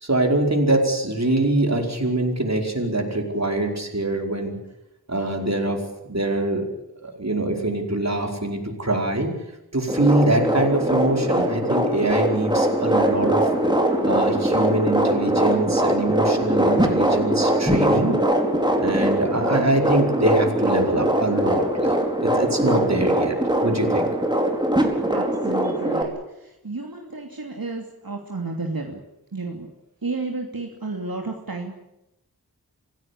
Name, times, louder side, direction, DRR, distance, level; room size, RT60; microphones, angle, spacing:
voice 1, 0.0-4.6 5.1-6.6 7.0-9.3 9.7-13.5 14.0-18.2 18.8-23.3 23.6-24.1, right 2 dB, 45° right, 3 dB, 5.1 m, -23 dB
sound 1, 9.9-26.0, right 1 dB, 10° right, 4.7 m, -22 dB
voice 2, 25.1-29.0 29.3-29.7 30.0-31.8, right 3 dB, 65° right, 1 dB, 2.9 m, -32 dB
26.5 x 16.5 x 8.6 m, 0.89 s
wide cardioid pair, 50°, 37 cm